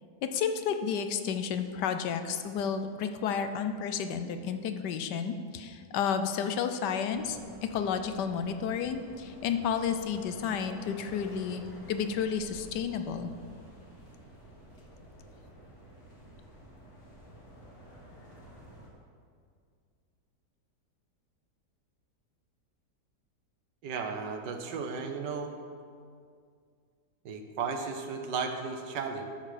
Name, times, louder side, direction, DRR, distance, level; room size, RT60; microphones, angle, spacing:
voice 1, 0.2-7.4 7.7-11.6 11.9-13.3, left 7 dB, 80° left, 8 dB, 1.3 m, -31 dB
sound 1, 7.1-18.9, equal, 45° left, 2.0 m, -51 dB
voice 2, 23.8-25.5 27.2-29.3, right 5 dB, 85° right, 5 dB, 1.5 m, -34 dB
12.5 x 6.6 x 5.0 m, 2.2 s
omnidirectional pair, 1.8 m